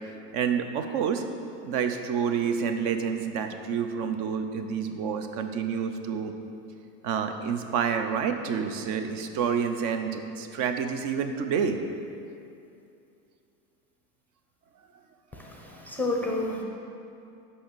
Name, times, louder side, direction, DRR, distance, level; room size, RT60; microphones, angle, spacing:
voice 1, 0.3-1.2 1.6-6.3 7.0-11.8, right 7 dB, 40° right, 7 dB, 0.7 m, -28 dB
voice 2, 15.3-16.6, left 2 dB, 5° left, -1 dB, 0.7 m, -30 dB
6.2 x 5.6 x 6.8 m, 2.6 s
supercardioid pair, 130°, 48 cm